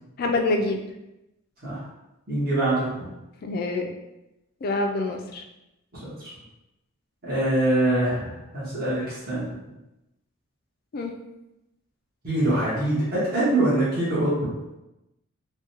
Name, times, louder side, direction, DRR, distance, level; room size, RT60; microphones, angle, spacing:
voice 1, 0.2-0.8 3.4-3.9 4.6-5.4 10.9-11.1, left 2 dB, 45° left, 4 dB, 0.3 m, -26 dB
voice 2, 2.3-3.1 6.0-6.1 7.2-9.4 12.2-14.5, right 1 dB, 45° right, -10 dB, 1.2 m, -24 dB
3.6 x 2.2 x 2.8 m, 0.94 s
head